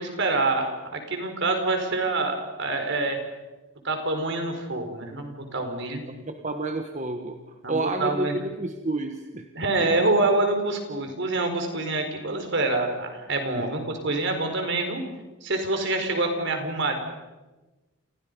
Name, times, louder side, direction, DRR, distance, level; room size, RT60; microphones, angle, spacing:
voice 1, 0.0-3.2 3.8-6.0 7.6-8.3 9.5-15.0 15.4-17.0, right 2 dB, 55° right, 5 dB, 4.6 m, -26 dB
voice 2, 6.2-7.4 7.7-9.5 9.8-9.9 13.6-13.7 15.7-15.8, right 2 dB, 35° right, 5 dB, 1.4 m, -30 dB
29.5 x 28.0 x 5.4 m, 1.1 s
head